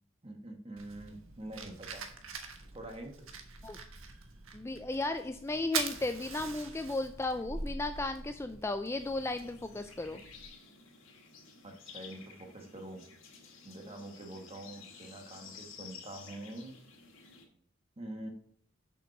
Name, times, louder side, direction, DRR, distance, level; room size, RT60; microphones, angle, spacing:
voice 1, 0.2-2.1 2.7-3.1 11.6-13.0 13.6-16.8 18.0-18.3, right 1 dB, 30° right, 4 dB, 1.4 m, -45 dB
Fire, 0.8-10.4, right 5 dB, 90° right, 1.3 m, -43 dB
voice 2, 4.5-10.2, left 2 dB, 15° left, 8 dB, 0.3 m, -35 dB
sound 1, 9.0-17.4, left 5 dB, 80° left, 2.0 m, -53 dB
6.9 x 6.1 x 5.9 m, 0.63 s
head